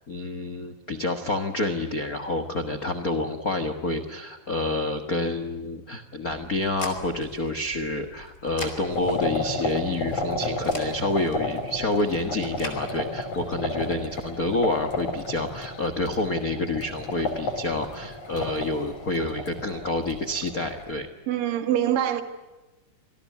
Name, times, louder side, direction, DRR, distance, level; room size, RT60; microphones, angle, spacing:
voice 1, 0.0-21.1, left 2 dB, 80° left, 0.8 m, -28 dB
sound 1, 6.3-12.8, left 2 dB, 20° left, 4.0 m, -43 dB
sound 2, 8.9-20.9, left 2 dB, 55° left, 5.6 m, -32 dB
voice 2, 21.3-22.2, right 11 dB, 70° right, 3.4 m, -24 dB
27.0 x 19.0 x 9.5 m
omnidirectional pair, 4.1 m